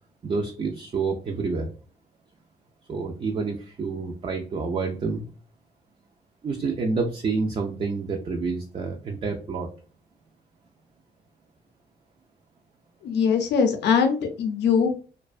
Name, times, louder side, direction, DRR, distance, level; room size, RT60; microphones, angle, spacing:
voice 1, 0.2-1.7 2.9-5.2 6.4-9.7, right 4 dB, 35° right, 2 dB, 0.4 m, -28 dB
voice 2, 13.0-14.9, left 6 dB, 85° left, 5 dB, 0.5 m, -22 dB
2.4 x 2.2 x 2.3 m, 0.38 s
cardioid pair, 95°, 17 cm